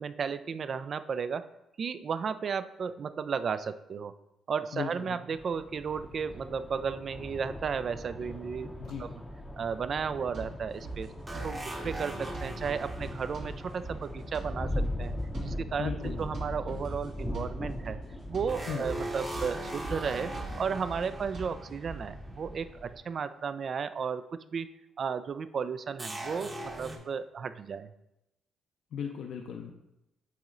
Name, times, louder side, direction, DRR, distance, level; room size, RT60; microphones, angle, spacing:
voice 1, 0.0-1.5 1.8-4.1 4.5-9.1 9.6-11.1 11.4-15.2 15.4-15.9 16.2-18.0 18.3-24.7 25.0-27.9, right 6 dB, 50° right, 13 dB, 0.3 m, -34 dB
voice 2, 4.7-5.2 8.8-9.1 15.8-16.2 18.7-18.8 28.9-29.7, left 7 dB, 70° left, 2 dB, 0.5 m, -36 dB
sound 1, 5.4-23.0, left 1 dB, 10° left, 0.6 m, -40 dB
sound 2, 10.3-22.0, right 3 dB, 75° right, 2.4 m, -44 dB
sound 3, 11.3-14.8 18.5-22.5 22.8-22.9 26.0-27.0, right 1 dB, 20° right, 0.9 m, -40 dB
8.3 x 3.0 x 3.8 m, 0.88 s
cardioid pair, 90°, 0 cm